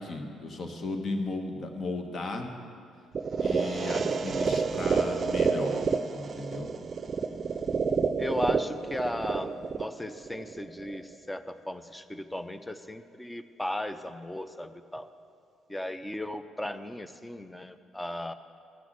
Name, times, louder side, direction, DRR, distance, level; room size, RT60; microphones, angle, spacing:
voice 1, 0.0-2.5 3.4-5.9 6.1-6.7, left 2 dB, 45° left, 4 dB, 1.4 m, -35 dB
sound 1, 3.1-11.1, right 5 dB, 45° right, 0.5 m, -29 dB
voice 2, 8.2-15.1 15.7-18.3, left 1 dB, 10° left, 10 dB, 0.7 m, -36 dB
13.5 x 6.1 x 7.7 m, 2.3 s
hypercardioid pair, 50°, 0 cm